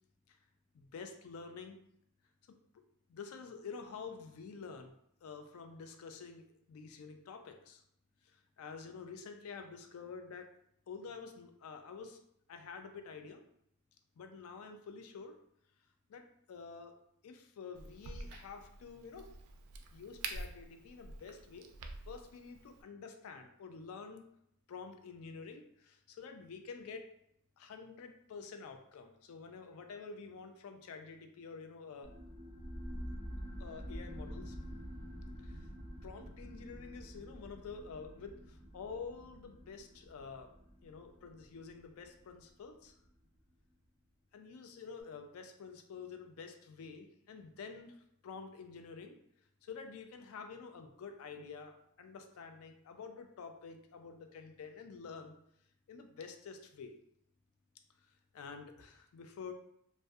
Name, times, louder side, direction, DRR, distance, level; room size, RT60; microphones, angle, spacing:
voice 1, 0.7-1.8 3.1-4.9 5.2-7.8 8.3-10.5 10.9-12.2 12.5-13.4 14.2-15.4 16.1-16.9 17.2-19.3 19.9-21.7 22.1-24.2 24.7-27.0 27.6-32.1 33.6-34.6 35.4-35.7 36.0-40.5 40.8-42.9 44.3-47.9 48.2-49.2 49.6-55.3 55.9-56.9 58.3-59.5, left 5 dB, 75° left, 6 dB, 0.3 m, -48 dB
Crack, 17.7-22.8, right 3 dB, 85° right, 0.3 m, -47 dB
sound 1, 32.0-43.2, equal, 10° left, 0.6 m, -47 dB
2.6 x 2.1 x 2.3 m, 0.74 s
head